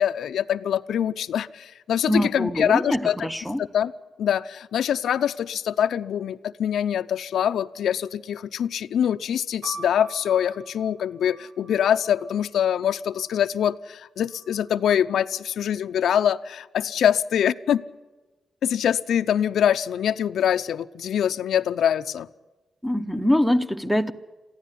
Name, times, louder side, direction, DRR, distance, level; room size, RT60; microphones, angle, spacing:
voice 1, 0.0-3.3 3.6-3.9 4.2-17.8 18.6-22.3, left 9 dB, 85° left, 11 dB, 0.6 m, -24 dB
voice 2, 2.1-3.6 22.8-24.1, equal, ahead, 6 dB, 0.8 m, -23 dB
sound 1, 9.6-13.5 14.3-15.0, right 4 dB, 65° right, 1.5 m, -45 dB
22.5 x 15.0 x 10.0 m, 1.2 s
wide cardioid pair, 155°, 0 cm